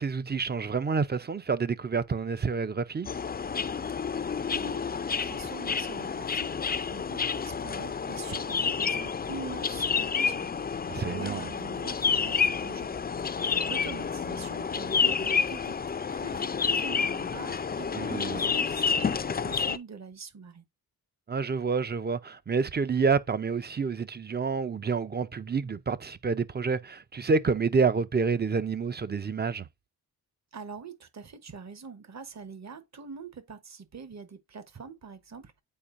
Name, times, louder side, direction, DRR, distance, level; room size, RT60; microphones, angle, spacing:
voice 1, 0.0-3.1 10.9-11.5 17.9-18.4 21.3-29.7, right 5 dB, 25° right, 0.5 m, -28 dB
sound 1, 3.0-19.8, left 6 dB, 25° left, 0.4 m, -29 dB
voice 2, 4.5-6.5 6.9-10.5 10.8-13.0 13.2-20.6 30.5-35.6, right 5 dB, 45° right, 1.1 m, -44 dB
8.7 x 4.5 x 2.5 m
wide cardioid pair, 100°, 37 cm